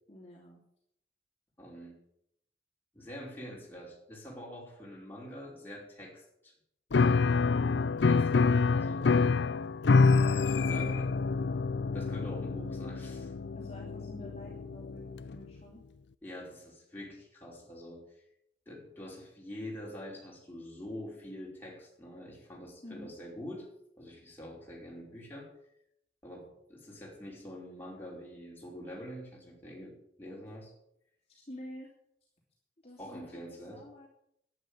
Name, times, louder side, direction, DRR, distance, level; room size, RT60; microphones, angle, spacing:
voice 1, 0.1-0.6 13.5-15.8 22.8-23.1 31.3-31.9 32.8-34.1, equal, 35° left, -3 dB, 2.9 m, -49 dB
voice 2, 1.6-2.0 2.9-6.5 8.0-9.1 10.3-11.1 11.9-13.4 16.2-18.2 18.7-23.7 24.0-25.5 26.2-30.7 33.0-33.8, equal, 10° left, -4 dB, 5.3 m, -45 dB
Piano, 6.9-15.4, left 4 dB, 85° left, 0.5 m, -27 dB
11.5 x 10.5 x 9.0 m, 0.75 s
head